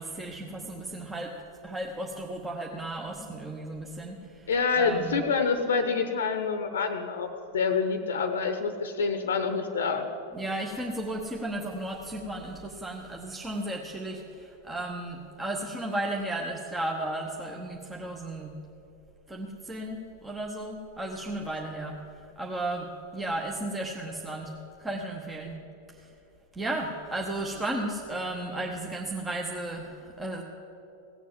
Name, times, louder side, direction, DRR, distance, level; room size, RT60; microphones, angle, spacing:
voice 1, 0.0-1.3 1.6-5.3 10.3-18.5 19.3-22.0 22.4-24.5 24.8-25.6 25.9-26.1 26.5-30.4, right 1 dB, 10° right, 0 dB, 1.0 m, -34 dB
voice 2, 4.5-10.1, left 5 dB, 65° left, 7 dB, 0.8 m, -27 dB
16.5 x 7.3 x 7.6 m, 2.9 s
figure-of-eight pair, 90°, 0 cm